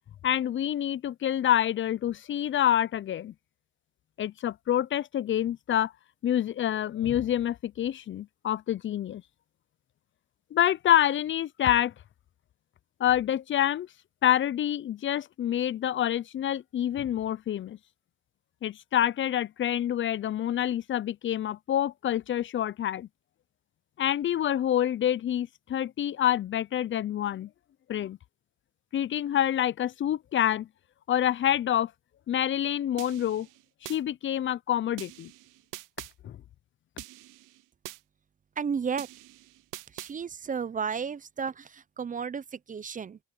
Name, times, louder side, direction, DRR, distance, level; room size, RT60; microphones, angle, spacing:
voice 1, 0.2-3.3 4.2-5.9 6.2-9.2 10.5-11.9 13.0-13.9 14.2-17.8 18.6-23.1 24.0-27.5 27.9-28.2 28.9-30.7 31.1-31.9 32.3-33.5 33.8-35.3 36.2-36.4, left 11 dB, 40° left, 0.4 m, -27 dB
sound 1, 33.0-34.0 35.0-36.1 37.0-38.0 39.0-40.1, right 17 dB, 85° right, 0.7 m, -44 dB
voice 2, 38.6-39.1 39.9-43.2, right 6 dB, 25° right, 0.5 m, -33 dB
open air
cardioid pair, 105°, 31 cm